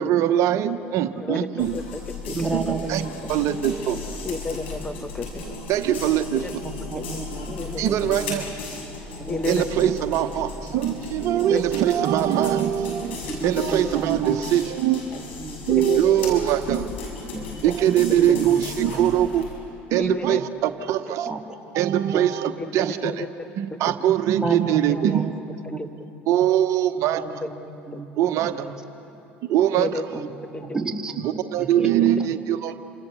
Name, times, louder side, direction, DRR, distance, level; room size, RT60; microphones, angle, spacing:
voice 1, 0.0-1.8 2.5-3.0 3.3-4.0 5.7-6.6 7.8-8.4 9.5-13.2 13.4-15.0 15.6-16.9 17.6-19.4 19.9-21.3 21.7-23.3 23.6-25.3 26.3-27.3 28.2-28.7 29.4-29.9 31.2-32.7, right 11 dB, 55° right, 9 dB, 1.1 m, -22 dB
voice 2, 1.2-1.8 2.3-2.6 4.3-5.6 6.4-6.5 6.9-7.0 7.5-7.9 9.3-9.8 11.4-11.6 13.6-13.9 15.7-16.2 18.2-18.3 20.0-20.4 22.6-22.7 23.0-23.2 23.9-24.0 24.9-25.0 25.8-25.9 27.4-27.5 27.9-28.0 29.7-30.0 30.5-30.8, left 3 dB, 20° left, 8 dB, 1.8 m, -31 dB
sound 1, 1.6-19.5, left 3 dB, 80° left, 6.8 m, -36 dB
voice 3, 2.3-3.1 6.6-7.5 7.9-8.4 9.2-10.2 10.7-10.9 13.3-14.5 15.1-15.6 17.3-17.8 18.2-18.6 20.3-20.4 21.3-21.4 22.1-22.5 24.4-25.8 27.1-28.1 28.4-28.7 30.1-31.9, right 4 dB, 10° right, 0 dB, 3.7 m, -33 dB
29.0 x 26.0 x 7.2 m, 2.9 s
hypercardioid pair, 70°, 6 cm